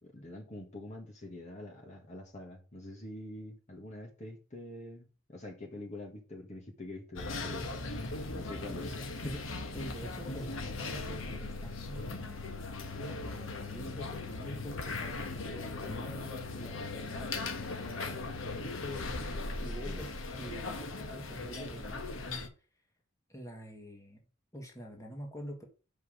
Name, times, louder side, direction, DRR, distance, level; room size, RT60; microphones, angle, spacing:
voice 1, 0.0-9.5 15.9-16.2 19.8-20.1, left 1 dB, 35° left, 1.6 m, -45 dB
sound 1, 7.2-22.5, left 3 dB, 90° left, 1.2 m, -39 dB
voice 2, 9.7-12.4 13.1-19.0 19.6-22.0 23.3-24.3 24.5-25.6, equal, 15° left, 1.8 m, -46 dB
6.0 x 5.4 x 6.4 m
head